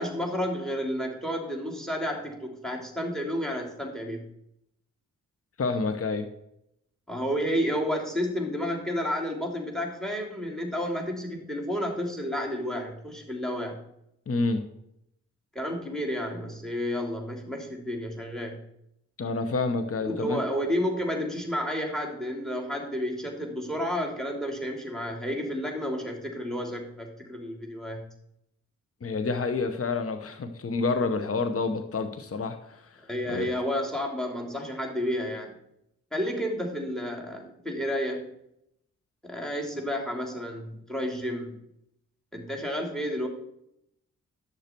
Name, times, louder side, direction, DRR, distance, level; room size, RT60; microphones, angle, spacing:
voice 1, 0.0-4.2 7.1-13.8 15.5-18.6 20.1-28.0 33.1-35.5 36.1-38.2 39.2-41.5 42.3-43.3, equal, ahead, 2 dB, 3.2 m, -31 dB
voice 2, 5.6-6.3 14.3-14.6 19.2-20.4 29.0-33.0 33.3-33.5, left 3 dB, 45° left, 9 dB, 1.1 m, -28 dB
11.5 x 6.7 x 4.5 m, 0.77 s
supercardioid pair, 45°, 32 cm